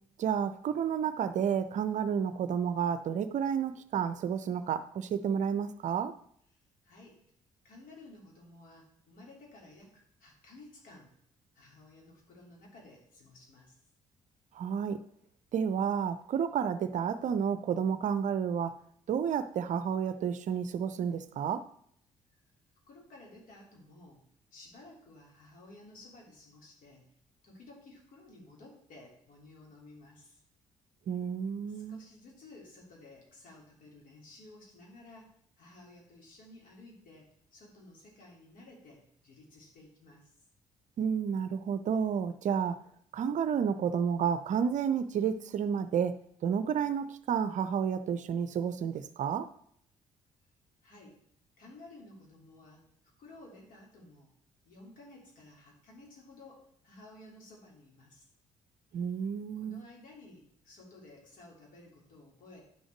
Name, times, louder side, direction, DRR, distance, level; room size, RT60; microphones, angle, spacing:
voice 1, 0.2-6.1 14.5-15.0 15.5-18.7 19.1-21.6 31.1-32.0 41.0-42.8 43.1-46.1 46.4-49.5 58.9-59.8, right 7 dB, 50° right, 12 dB, 0.6 m, -31 dB
voice 2, 6.8-7.2 7.6-11.1 11.5-13.7 22.3-22.4 22.9-24.2 24.5-27.1 27.4-30.4 31.7-40.3 50.8-51.2 51.6-52.8 53.2-54.3 54.6-58.2 59.6-62.6, left 2 dB, 55° left, -1 dB, 3.1 m, -54 dB
10.5 x 6.3 x 4.6 m, 0.67 s
figure-of-eight pair, 45°, 17 cm